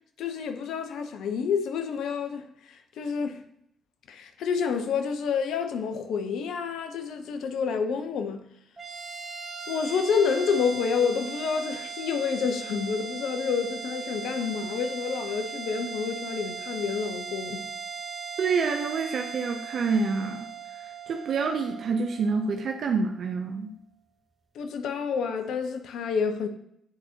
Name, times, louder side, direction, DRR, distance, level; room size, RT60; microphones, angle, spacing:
voice 1, 0.2-3.4 4.1-8.4 9.7-17.7 24.5-26.5, left 6 dB, 70° left, 0.7 m, -29 dB
sound 1, 8.8-23.4, right 6 dB, 30° right, 1.1 m, -39 dB
voice 2, 18.4-20.5 20.8-23.7, right 4 dB, 60° right, 0.5 m, -27 dB
8.6 x 4.1 x 2.8 m
hypercardioid pair, 45°, 0 cm